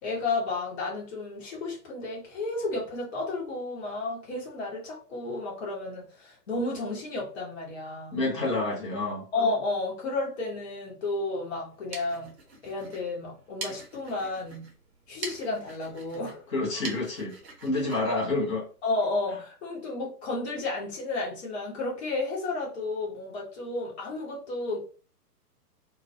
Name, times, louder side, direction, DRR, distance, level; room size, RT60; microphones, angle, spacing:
voice 1, 0.0-8.2 9.3-12.3 12.6-14.7 15.1-16.4 18.8-24.8, left 2 dB, 40° left, -3 dB, 0.9 m, -32 dB
voice 2, 8.1-9.2 16.5-17.4 17.6-18.6, left 2 dB, 20° left, -5 dB, 0.6 m, -28 dB
sound 1, 11.6-19.1, right 3 dB, 40° right, 0.7 m, -44 dB
2.3 x 2.1 x 2.6 m, 0.38 s
figure-of-eight pair, 120°, 48 cm